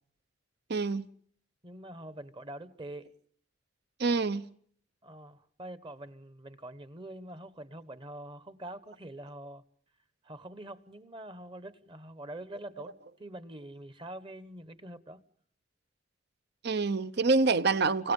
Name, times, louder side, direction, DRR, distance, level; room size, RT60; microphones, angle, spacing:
voice 1, 0.7-1.0 4.0-4.4 16.6-18.1, right 3 dB, 60° right, 1.0 m, -26 dB
voice 2, 1.6-3.1 5.0-9.6 10.2-12.9 13.2-15.2, right 1 dB, 30° right, 1.2 m, -45 dB
30.0 x 25.0 x 5.4 m
head